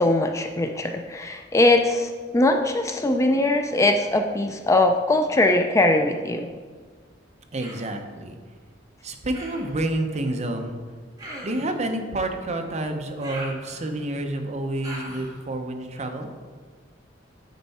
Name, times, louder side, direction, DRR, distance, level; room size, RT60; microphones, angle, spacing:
voice 1, 0.0-6.5, left 2 dB, 15° left, 5 dB, 0.3 m, -21 dB
voice 2, 7.5-8.4 9.0-10.8 11.4-16.3, right 1 dB, 35° right, 4 dB, 0.7 m, -29 dB
Human voice, 7.6-8.0 9.3-9.8 11.2-11.8 13.2-14.1 14.8-15.4, right 1 dB, 20° right, 1.6 m, -39 dB
9.2 x 4.4 x 4.2 m, 1.5 s
head